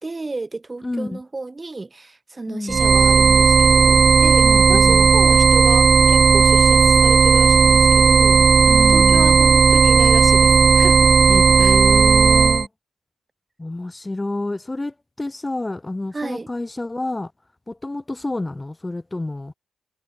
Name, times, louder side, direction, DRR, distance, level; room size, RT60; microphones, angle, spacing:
voice 1, 0.0-8.4 8.8-11.1 11.6-11.8 16.1-16.5, right 3 dB, 25° right, 0.9 m, -31 dB
voice 2, 0.8-1.2 2.5-2.8 4.4-5.1 8.7-9.4 11.3-12.7 13.6-17.3 17.7-19.5, left 2 dB, 20° left, 0.7 m, -28 dB
sound 1, 2.7-12.7, right 5 dB, 50° right, 0.5 m, -13 dB
supercardioid pair, 50°, 0 cm